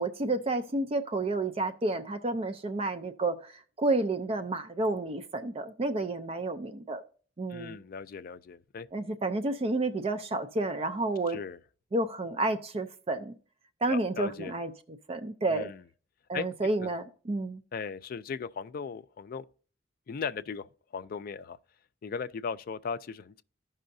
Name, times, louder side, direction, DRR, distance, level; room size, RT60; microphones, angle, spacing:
voice 1, 0.0-7.0 7.4-7.8 8.9-11.4 11.9-13.3 13.8-14.7 15.1-15.7 16.3-17.6, right 2 dB, 30° right, 0.4 m, -30 dB
voice 2, 7.5-8.9 11.3-11.6 13.9-14.6 15.5-15.8 16.3-16.5 16.8-16.9 17.7-19.4 20.1-21.6 22.0-23.4, left 5 dB, 50° left, 0.4 m, -37 dB
14.5 x 5.5 x 2.6 m
head